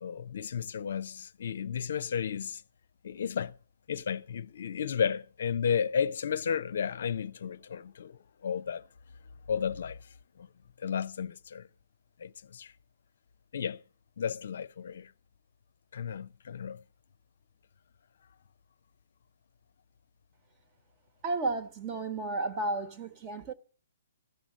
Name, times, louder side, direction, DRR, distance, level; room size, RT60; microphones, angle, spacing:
voice 1, 0.0-2.6 3.0-3.5 3.9-8.8 9.5-10.0 10.4-10.5 10.8-11.7 12.2-12.7 13.5-13.8 14.2-15.1 15.9-16.8, left 7 dB, 65° left, 0.5 m, -33 dB
voice 2, 21.2-23.5, right 2 dB, 30° right, 1.3 m, -33 dB
15.0 x 6.2 x 7.2 m
hypercardioid pair, 135°, 0 cm